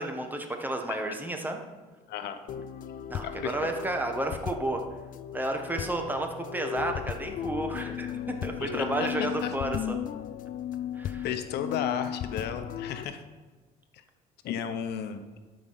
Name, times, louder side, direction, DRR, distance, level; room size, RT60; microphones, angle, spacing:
voice 1, 0.0-1.6 3.1-4.8 5.3-10.0 10.9-11.2, right 1 dB, 10° right, 4 dB, 1.4 m, -32 dB
voice 2, 2.1-2.4 3.2-3.7 8.6-9.6 11.2-13.2 13.9-14.0 14.4-15.2, left 8 dB, 75° left, 9 dB, 0.9 m, -34 dB
sound 1, 2.5-13.0, left 9 dB, 55° left, 0.5 m, -36 dB
12.5 x 5.2 x 5.8 m, 1.3 s
cardioid pair, 110°, 17 cm